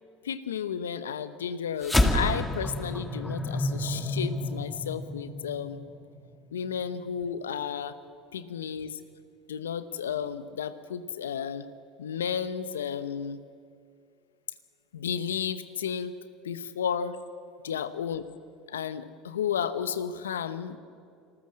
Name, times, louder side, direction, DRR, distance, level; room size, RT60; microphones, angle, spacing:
voice 1, 0.2-5.8 6.5-8.0 8.3-9.0 9.5-11.7 12.0-13.4 14.9-16.1 16.4-17.2 17.6-18.2 18.7-20.8, left 8 dB, 90° left, 14 dB, 0.9 m, -32 dB
sound 1, 1.8-6.5, left 1 dB, 10° left, 2.0 m, -29 dB
26.0 x 14.0 x 7.6 m, 2.4 s
hypercardioid pair, 75°, 0 cm